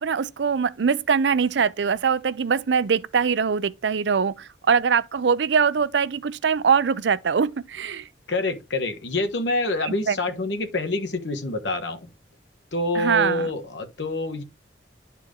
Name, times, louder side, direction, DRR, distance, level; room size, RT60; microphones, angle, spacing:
voice 1, 0.0-8.1 9.8-10.2 12.9-13.5, right 6 dB, 70° right, 0.5 m, -22 dB
voice 2, 8.3-12.1 12.7-14.4, left 2 dB, 75° left, 1.3 m, -26 dB
11.0 x 4.4 x 3.7 m
head